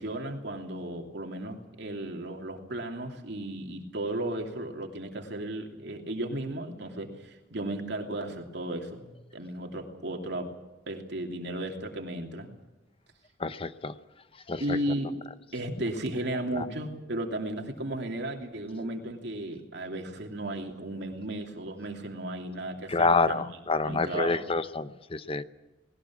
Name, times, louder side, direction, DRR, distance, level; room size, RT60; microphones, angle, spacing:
voice 1, 0.0-10.5 10.9-12.5 14.6-15.2 15.5-23.4 23.8-24.5, right 1 dB, 65° right, 3 dB, 2.8 m, -35 dB
voice 2, 13.4-13.9 14.5-14.8 16.5-16.7 22.9-25.4, left 3 dB, 30° left, 13 dB, 0.7 m, -27 dB
20.0 x 19.0 x 8.6 m, 1.1 s
head